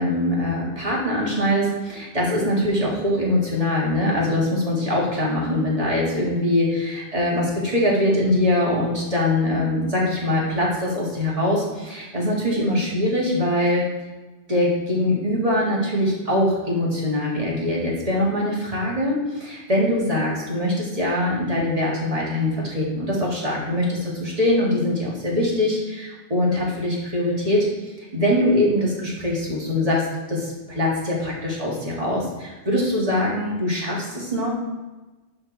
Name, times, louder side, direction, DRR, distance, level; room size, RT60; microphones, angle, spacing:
voice 1, 0.0-13.9 14.5-34.5, left 1 dB, 30° right, -4 dB, 2.2 m, -23 dB
11.5 x 4.3 x 4.1 m, 1.2 s
omnidirectional pair, 1.2 m